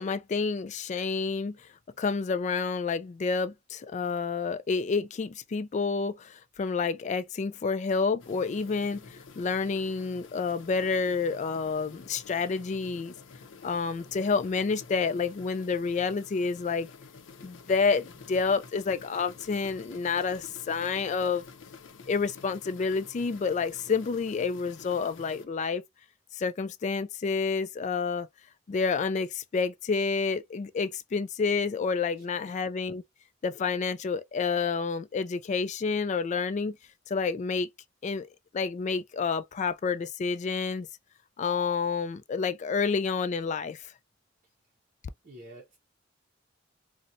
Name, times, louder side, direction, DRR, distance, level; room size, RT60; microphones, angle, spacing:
voice 1, 0.0-1.7 2.0-13.1 13.6-16.9 17.4-21.4 22.1-25.8 26.3-28.3 28.7-33.0 33.4-36.8 37.1-37.7 38.0-38.3 38.5-40.9 41.4-43.9, left 5 dB, 40° left, 0.3 m, -29 dB
sound 1, 8.2-25.5, left 5 dB, 80° left, 0.6 m, -49 dB
voice 2, 45.2-45.8, right 1 dB, 45° right, 0.6 m, -48 dB
4.2 x 2.1 x 2.4 m
head